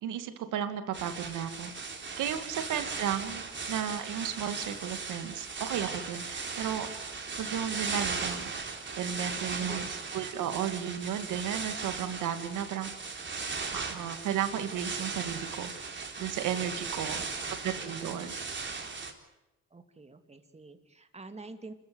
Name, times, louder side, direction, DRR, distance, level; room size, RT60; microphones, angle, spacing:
voice 1, 0.0-1.9 2.2-6.9 7.4-8.5 9.0-12.9 13.7-15.7 16.2-17.3 17.6-18.3, right 9 dB, 85° right, 9 dB, 2.4 m, -34 dB
sound 1, 0.9-19.1, right 4 dB, 40° right, 4.0 m, -37 dB
voice 2, 9.6-10.1 17.2-18.2 19.7-21.7, right 3 dB, 20° right, 7 dB, 2.7 m, -49 dB
27.5 x 14.5 x 9.6 m, 0.97 s
cardioid pair, 90°, 30 cm